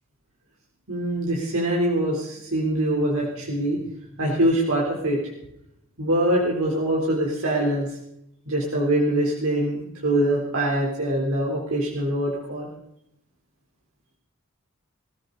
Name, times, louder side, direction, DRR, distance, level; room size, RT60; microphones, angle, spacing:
voice 1, 0.9-3.8 4.2-5.2 6.0-8.0 8.5-12.7, right 1 dB, 85° right, -3 dB, 3.9 m, -23 dB
22.5 x 15.0 x 4.1 m, 0.76 s
head